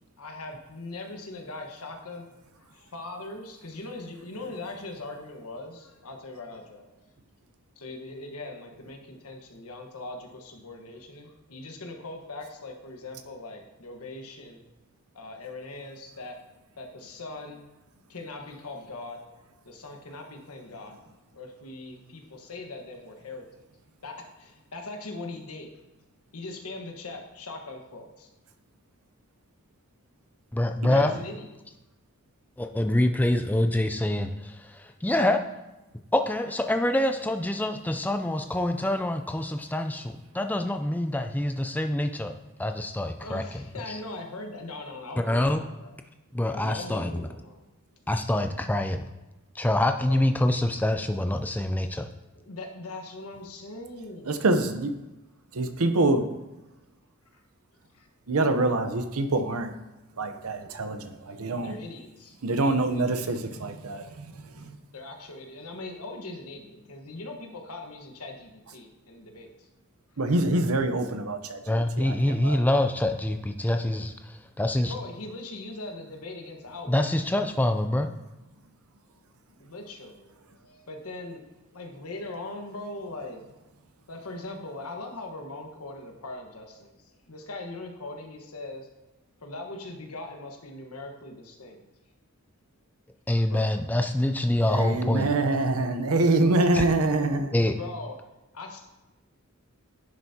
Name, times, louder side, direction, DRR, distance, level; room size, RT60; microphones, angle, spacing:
voice 1, 0.2-2.2 2.6-7.1 7.8-14.6 15.1-16.4 16.8-17.7 18.1-19.2 19.6-21.0 21.3-23.4 24.0-25.7 26.3-28.3 30.9-31.5 43.2-45.9 46.5-47.7 50.1-50.3 52.3-54.4 57.9-58.1 61.6-63.1 64.9-69.7 74.9-77.1 79.6-80.3 80.6-81.4 81.7-83.4 84.1-88.9 89.4-91.8 93.4-93.7 97.7-98.1 98.5-98.8, left 2 dB, 85° left, 3 dB, 1.3 m, -40 dB
voice 2, 30.5-31.2 32.6-35.4 36.1-42.3 42.6-44.0 45.2-45.6 46.3-47.3 48.1-49.1 49.5-52.1 71.7-74.9 76.9-78.1 93.3-95.3 96.7-96.8 97.5-97.7, left 1 dB, 10° left, 6 dB, 0.3 m, -26 dB
voice 3, 54.3-54.9 55.5-56.2 58.3-59.7 60.2-61.7 62.4-64.8 70.2-72.6 94.6-97.5, right 2 dB, 80° right, 8 dB, 0.8 m, -25 dB
10.5 x 7.9 x 2.8 m, 1.0 s
head